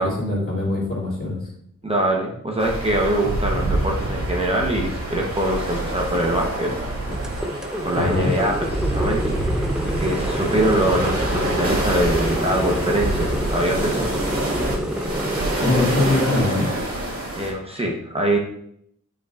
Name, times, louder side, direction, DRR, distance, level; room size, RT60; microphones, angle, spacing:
voice 1, 0.0-1.4 7.9-8.3 15.6-16.7, left 2 dB, 45° left, -4 dB, 3.1 m, -22 dB
voice 2, 1.8-6.7 7.8-9.4 10.0-14.1 17.4-18.4, right 1 dB, 20° right, -1 dB, 1.0 m, -23 dB
sound 1, 2.6-17.5, right 1 dB, 50° right, 2.2 m, -26 dB
sound 2, 7.1-16.2, equal, ahead, 0.6 m, -28 dB
9.4 x 5.7 x 2.5 m, 0.70 s
wide cardioid pair, 140°, 30 cm